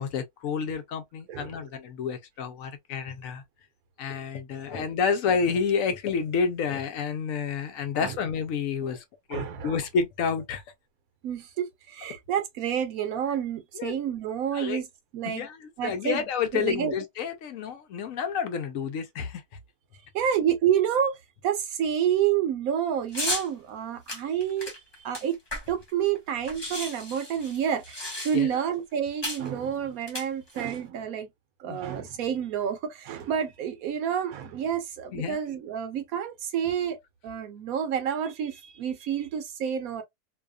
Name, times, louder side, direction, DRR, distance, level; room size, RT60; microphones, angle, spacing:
voice 1, 0.0-3.4 4.0-9.0 9.3-10.6 13.7-14.0 14.5-14.8 15.3-19.4 28.3-28.5 31.7-31.8 35.1-35.4, left 6 dB, 70° left, 0.9 m, -29 dB
voice 2, 9.3-9.7 11.2-14.9 15.1-15.5 15.8-16.2 16.5-16.9 20.1-21.2 21.4-24.7 25.0-25.4 25.7-31.3 31.6-37.0 37.2-40.0, right 9 dB, 70° right, 1.1 m, -29 dB
sound 1, 23.1-23.5 24.1-25.9 26.2-26.3 26.4-28.6 29.2-29.5 30.0-30.8, left 1 dB, 20° left, 0.8 m, -34 dB
2.7 x 2.3 x 2.3 m
omnidirectional pair, 1.6 m